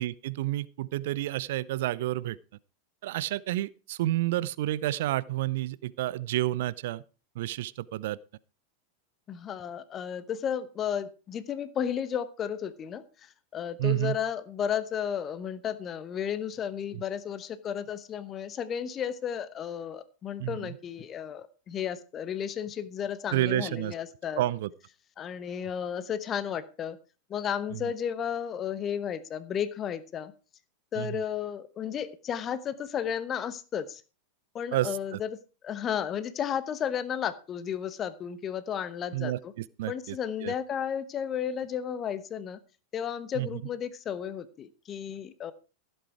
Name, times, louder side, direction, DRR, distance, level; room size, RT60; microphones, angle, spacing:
voice 1, 0.0-2.4 3.0-7.0 7.4-8.2 13.8-14.2 16.9-17.0 20.4-20.8 23.3-23.9 24.4-24.7 27.7-27.8 31.0-31.2 34.7-35.2 39.1-40.2 40.4-40.5 43.4-43.5, right 15 dB, 55° right, 0.5 m, -30 dB
voice 2, 9.3-24.4 25.2-27.0 27.3-30.3 30.9-34.0 34.5-35.3 35.6-39.5 39.9-42.6 42.9-45.5, left 8 dB, 25° left, 1.0 m, -33 dB
15.5 x 8.1 x 4.8 m
figure-of-eight pair, 90°, 0 cm